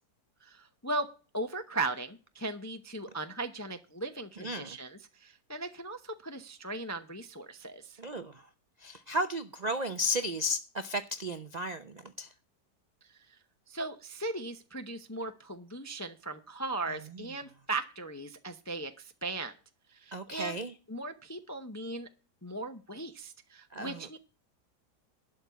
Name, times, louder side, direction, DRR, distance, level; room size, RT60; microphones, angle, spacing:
voice 1, 0.4-1.1 1.3-8.0 13.7-19.5 19.9-20.6 20.9-22.1 22.4-24.2, right 2 dB, 25° left, 0.4 m, -38 dB
voice 2, 4.4-4.8 8.0-8.4 8.8-12.3 20.1-20.7 23.7-24.2, equal, 55° right, 0.4 m, -34 dB
12.0 x 5.3 x 8.2 m
omnidirectional pair, 1.9 m